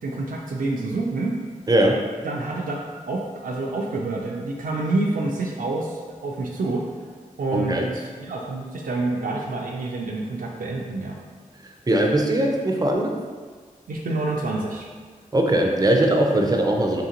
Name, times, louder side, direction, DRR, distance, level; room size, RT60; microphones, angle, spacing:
voice 1, 0.0-1.3 2.2-6.8 7.4-11.2 13.9-14.9, right 2 dB, 80° right, -2 dB, 0.4 m, -28 dB
voice 2, 1.7-2.0 7.5-7.9 11.9-13.2 15.3-17.0, right 1 dB, 25° right, 1 dB, 0.5 m, -20 dB
3.7 x 3.6 x 2.8 m, 1.5 s
wide cardioid pair, 100°, 14 cm